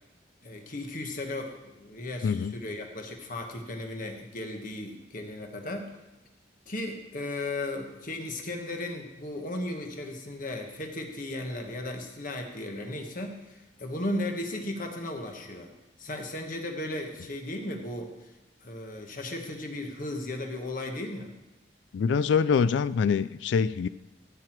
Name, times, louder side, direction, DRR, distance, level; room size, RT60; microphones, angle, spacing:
voice 1, 0.4-5.9 6.7-15.7 16.0-18.3 18.6-21.3, left 1 dB, 50° left, 3 dB, 1.4 m, -36 dB
voice 2, 2.2-2.5 21.9-23.9, left 6 dB, 75° left, 16 dB, 0.3 m, -24 dB
14.5 x 7.7 x 4.6 m, 1.0 s
head